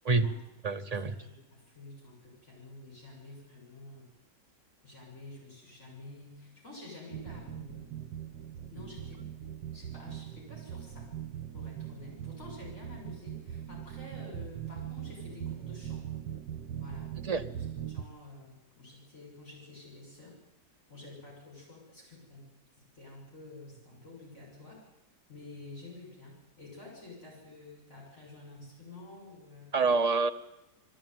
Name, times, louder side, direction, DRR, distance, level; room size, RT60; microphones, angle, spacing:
voice 1, 0.0-0.4 0.9-4.1 4.8-7.9 8.7-9.2 9.7-11.1 11.5-16.1 16.8-17.1 17.6-20.4 20.9-22.5 22.9-24.8 25.3-29.8, left 2 dB, 45° left, -2 dB, 7.3 m, -50 dB
voice 2, 0.6-1.2 17.2-17.4 29.7-30.3, right 4 dB, 30° right, 5 dB, 0.8 m, -27 dB
sound 1, 7.1-18.0, right 10 dB, 65° right, 1.7 m, -41 dB
21.0 x 14.5 x 9.4 m, 0.92 s
omnidirectional pair, 1.9 m